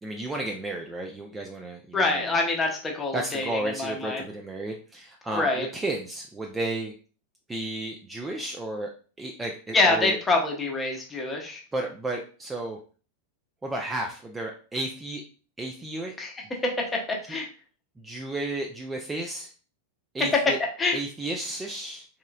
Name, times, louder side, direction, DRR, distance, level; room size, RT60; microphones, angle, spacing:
voice 1, 0.0-2.4 3.1-6.9 7.5-8.9 9.2-10.2 11.7-12.8 13.6-15.2 15.6-16.1 18.0-19.5 20.1-20.6 20.9-22.1, right 2 dB, 10° right, 1 dB, 0.4 m, -33 dB
voice 2, 1.9-4.3 5.3-5.7 9.7-11.6 16.2-16.3 16.6-16.7 17.3-17.5 20.8-21.0, left 3 dB, 15° left, 1 dB, 0.9 m, -25 dB
3.7 x 3.0 x 2.2 m, 0.38 s
figure-of-eight pair, 90°, 0 cm